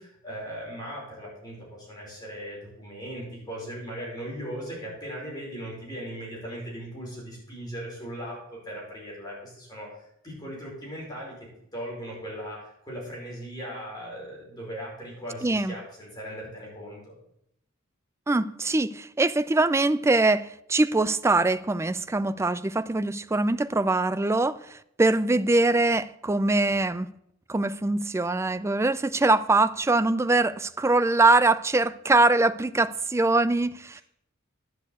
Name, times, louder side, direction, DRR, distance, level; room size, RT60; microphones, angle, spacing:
voice 1, 0.0-11.3 11.7-17.1, equal, 20° left, 5.3 m, -38 dB
voice 2, 15.4-15.7 18.3-27.1 27.5-34.0, right 2 dB, 15° right, 0.4 m, -23 dB
11.0 x 6.4 x 8.1 m
head